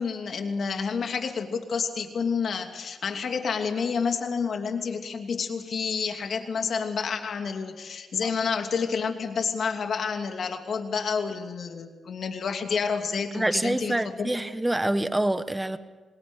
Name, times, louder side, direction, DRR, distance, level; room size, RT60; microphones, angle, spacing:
voice 1, 0.0-14.3, left 5 dB, 65° left, 4 dB, 2.9 m, -29 dB
voice 2, 13.3-15.8, right 1 dB, 15° right, 11 dB, 1.3 m, -26 dB
27.0 x 20.0 x 6.6 m, 1.3 s
cardioid pair, 75°, 0 cm